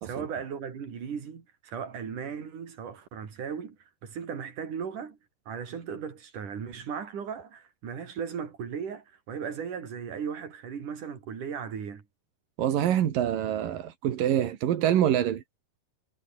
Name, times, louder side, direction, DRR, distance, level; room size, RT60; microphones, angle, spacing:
voice 1, 0.0-3.8 4.0-5.2 5.5-12.0, right 7 dB, 65° right, 4.9 m, -37 dB
voice 2, 12.6-15.4, right 11 dB, 85° right, 3.5 m, -25 dB
omnidirectional pair, 3.8 m